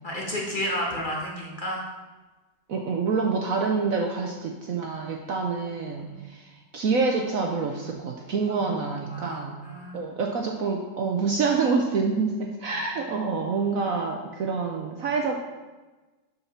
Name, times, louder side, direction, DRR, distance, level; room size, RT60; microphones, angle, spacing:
voice 1, 0.0-1.8 6.0-6.2 8.5-8.7 9.1-10.0 12.7-12.8, left 1 dB, 30° left, -3 dB, 1.4 m, -32 dB
voice 2, 2.7-9.5 9.9-15.4, right 4 dB, 60° right, 1 dB, 1.0 m, -27 dB
6.8 x 5.6 x 5.9 m, 1.2 s
omnidirectional pair, 1.9 m